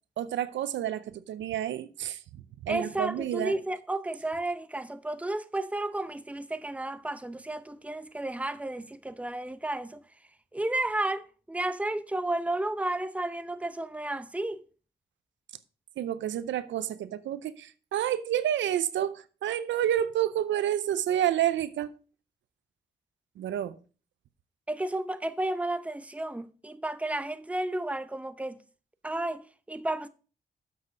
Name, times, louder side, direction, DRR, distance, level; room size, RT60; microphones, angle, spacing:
voice 1, 0.2-2.2 2.6-3.6 16.0-21.9 23.4-23.8, right 11 dB, 90° right, 0.6 m, -29 dB
voice 2, 2.7-10.0 10.5-14.6 24.7-28.6 29.0-30.1, right 1 dB, 5° right, 0.7 m, -32 dB
7.4 x 6.5 x 5.1 m
cardioid pair, 60°, 19 cm